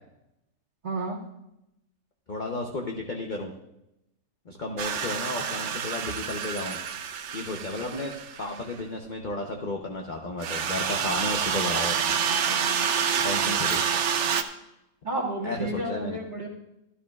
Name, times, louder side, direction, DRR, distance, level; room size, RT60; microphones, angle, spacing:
voice 1, 0.8-1.2 15.0-16.5, right 2 dB, 30° right, -5 dB, 2.0 m, -31 dB
voice 2, 2.3-3.5 4.5-6.8 7.3-12.2 13.2-13.8 15.4-16.2, left 2 dB, 45° left, 1 dB, 0.6 m, -33 dB
sound 1, 4.8-8.6 10.4-14.4, right 7 dB, 60° right, 0.8 m, -28 dB
12.5 x 12.5 x 2.3 m, 0.88 s
omnidirectional pair, 1.7 m